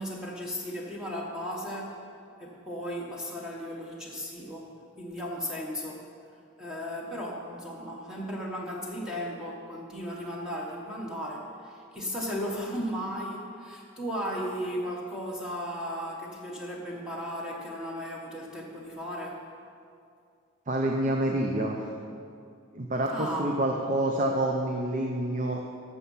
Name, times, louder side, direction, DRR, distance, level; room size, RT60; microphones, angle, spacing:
voice 1, 0.0-2.0 2.4-6.1 6.6-19.5 23.1-23.5, equal, 5° right, -3 dB, 1.2 m, -35 dB
voice 2, 20.7-21.8 22.7-25.6, right 1 dB, 35° right, 1 dB, 0.7 m, -27 dB
12.5 x 7.1 x 5.5 m, 2.4 s
head